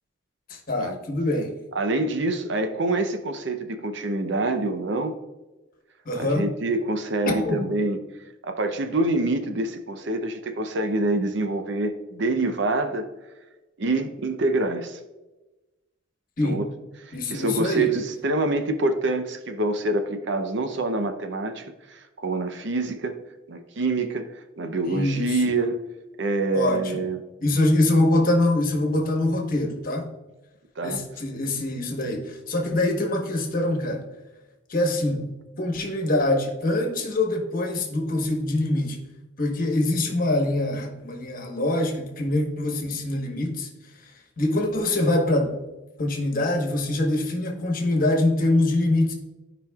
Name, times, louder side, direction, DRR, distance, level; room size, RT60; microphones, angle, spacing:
voice 1, 0.5-1.5 6.0-6.5 7.3-7.6 16.4-16.6 17.1-17.9 24.8-25.4 26.5-27.0 27.4-30.1 30.8-34.0 34.7-35.2 35.6-39.0 39.4-43.7 44.0-44.1 44.4-45.6 46.0-49.1, left 1 dB, 45° left, 2 dB, 1.2 m, -24 dB
voice 2, 1.7-5.1 6.2-8.0 8.4-13.1 13.8-15.0 16.4-16.6 17.1-23.2 23.5-24.3 24.6-25.8 26.2-27.2 30.8-31.0, right 2 dB, 60° right, 7 dB, 0.7 m, -26 dB
13.0 x 5.1 x 2.3 m, 1.1 s
head